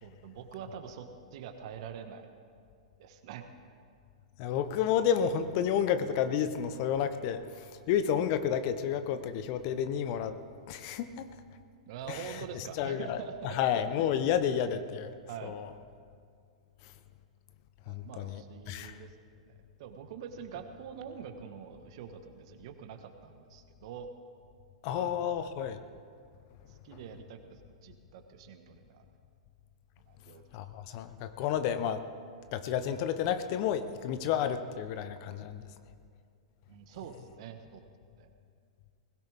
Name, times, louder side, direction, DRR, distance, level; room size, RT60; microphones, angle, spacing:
voice 1, 0.0-2.3 3.0-3.5 11.9-13.6 15.3-15.6 17.8-19.1 19.4-24.1 24.9-25.1 26.7-29.0 30.1-30.4 36.7-37.8 38.2-38.3, right 8 dB, 55° right, 6 dB, 1.4 m, -45 dB
voice 2, 4.4-10.4 10.7-11.3 12.1-15.1 15.4-15.7 16.8-16.9 17.9-19.0 24.8-25.8 30.5-32.0 32.5-35.7, left 8 dB, 45° left, 11 dB, 0.9 m, -31 dB
20.0 x 16.5 x 3.6 m, 2.3 s
hypercardioid pair, 105°, 3 cm